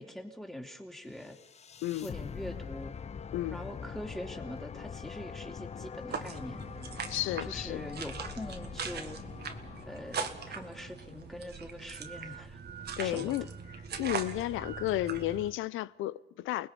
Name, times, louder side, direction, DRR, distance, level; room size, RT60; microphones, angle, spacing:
voice 1, 0.0-1.4 2.0-3.0 3.5-6.6 7.5-9.2 9.8-12.6 13.0-13.3, left 1 dB, ahead, 3.2 m, -43 dB
sound 1, 1.1-11.3, left 6 dB, 35° left, 0.6 m, -43 dB
sound 2, 6.1-15.5, right 6 dB, 55° right, 1.9 m, -41 dB
voice 2, 7.1-7.9 13.0-13.5 14.0-16.7, left 15 dB, 90° left, 0.7 m, -32 dB
29.5 x 19.5 x 5.4 m
cardioid pair, 90°, 20 cm